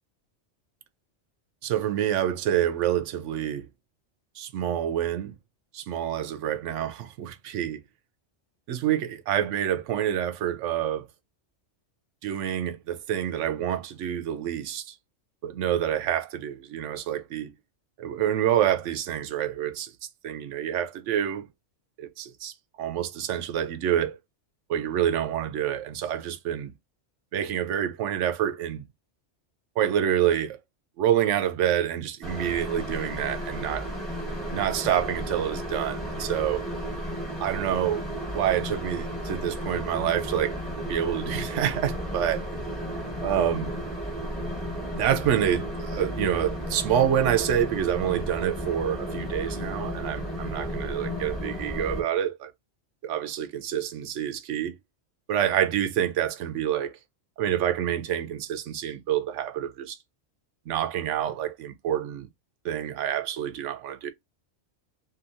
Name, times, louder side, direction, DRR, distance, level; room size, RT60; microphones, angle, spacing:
voice 1, 1.6-3.7 4.4-5.3 5.7-7.8 8.7-11.1 12.2-14.9 15.4-17.5 18.0-19.9 20.2-21.5 22.0-24.2 24.7-26.7 27.3-28.8 29.8-30.6 31.0-33.9 34.5-36.7 37.4-38.1 38.3-40.6 40.9-42.5 43.2-43.7 44.9-52.5 53.0-54.7 55.3-56.9 57.4-60.0 60.7-62.3 62.6-64.1, right 10 dB, 85° right, 0.9 m, -27 dB
sound 1, 32.2-52.0, equal, ahead, 1.2 m, -33 dB
2.8 x 2.7 x 2.5 m
omnidirectional pair, 1.2 m